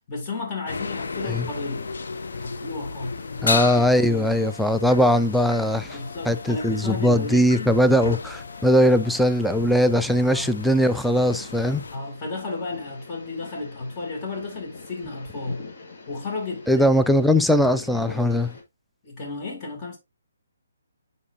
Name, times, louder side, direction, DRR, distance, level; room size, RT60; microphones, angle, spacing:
voice 1, 0.1-1.9 2.3-3.2 3.8-4.3 5.1-5.2 5.9-7.7 10.3-10.5 11.9-15.7 16.1-16.9 19.0-20.0, left 3 dB, 25° left, 2.3 m, -33 dB
sound 1, 0.7-12.0, left 4 dB, 65° left, 0.8 m, -34 dB
sound 2, 1.4-18.6, left 3 dB, 45° left, 1.9 m, -44 dB
voice 2, 3.4-6.0 6.3-11.8 16.7-18.5, equal, ahead, 0.3 m, -20 dB
9.9 x 4.0 x 2.6 m
figure-of-eight pair, 140°, 0 cm